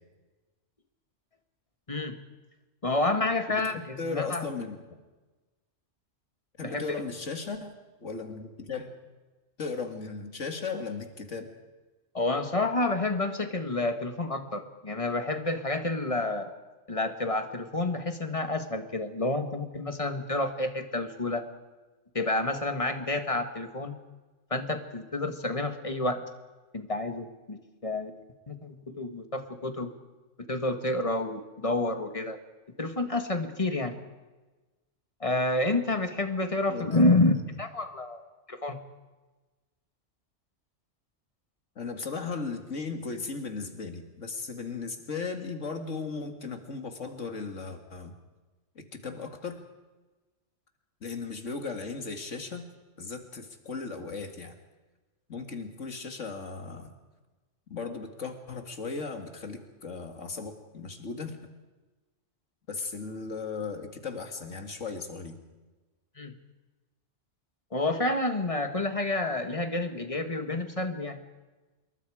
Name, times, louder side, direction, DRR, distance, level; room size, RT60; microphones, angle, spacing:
voice 1, 1.9-2.2 2.8-4.4 6.6-7.0 12.1-16.5 16.9-21.4 22.1-24.0 24.5-26.3 26.7-28.1 28.5-29.9 30.5-32.4 32.8-33.9 35.2-38.2 38.5-38.8 66.2-66.3 67.7-71.2, left 2 dB, 25° left, 7 dB, 1.7 m, -29 dB
voice 2, 4.0-4.8 6.6-8.9 9.6-11.5 36.7-37.1 41.8-48.1 48.8-49.6 51.0-52.7 53.0-54.5 55.3-56.9 57.7-61.4 62.7-65.4, left 4 dB, 75° left, 5 dB, 2.4 m, -36 dB
27.0 x 22.5 x 4.9 m, 1.2 s
omnidirectional pair, 1.3 m